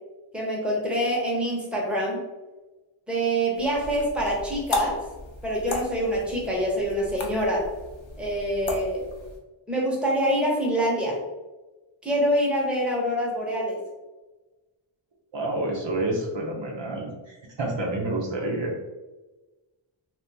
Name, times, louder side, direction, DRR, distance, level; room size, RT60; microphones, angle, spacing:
voice 1, 0.3-2.2 3.1-5.0 5.4-7.6 8.2-9.0 9.7-11.2 12.0-13.8, equal, ahead, -4 dB, 1.0 m, -25 dB
sound 1, 3.5-9.4, left 2 dB, 70° left, 0.7 m, -34 dB
voice 2, 15.3-18.7, right 1 dB, 65° right, -2 dB, 0.8 m, -29 dB
2.7 x 2.5 x 3.4 m, 1.2 s
wide cardioid pair, 60°, 48 cm